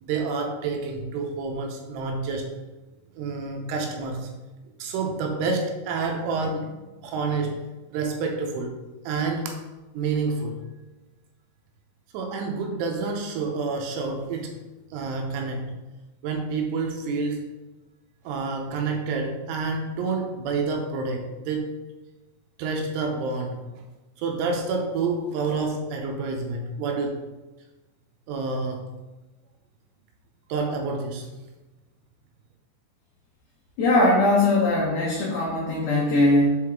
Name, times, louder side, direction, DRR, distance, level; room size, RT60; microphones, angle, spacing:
voice 1, 0.0-2.5 3.2-4.3 4.8-7.6 7.9-8.7 9.0-9.6 9.9-10.5 12.1-14.5 14.9-15.7 16.2-17.5 18.2-21.7 22.6-23.6 24.2-27.2 28.3-28.9 30.5-31.3, right 4 dB, 85° right, 3 dB, 3.0 m, -28 dB
voice 2, 33.8-36.6, left 2 dB, 85° left, -4 dB, 2.1 m, -20 dB
7.0 x 4.8 x 3.6 m, 1.1 s
omnidirectional pair, 5.7 m